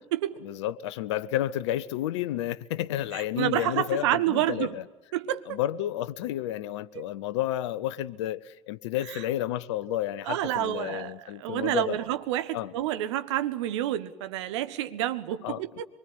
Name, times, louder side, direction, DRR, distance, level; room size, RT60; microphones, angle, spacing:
voice 1, 0.4-4.8 5.5-12.0 12.5-12.7 15.4-15.6, left 13 dB, 75° left, 0.9 m, -31 dB
voice 2, 3.1-4.8 5.1-5.6 6.9-7.0 9.1-9.2 10.2-11.1 11.4-15.8, right 13 dB, 75° right, 1.5 m, -29 dB
25.0 x 24.0 x 9.8 m
figure-of-eight pair, 60°, 15 cm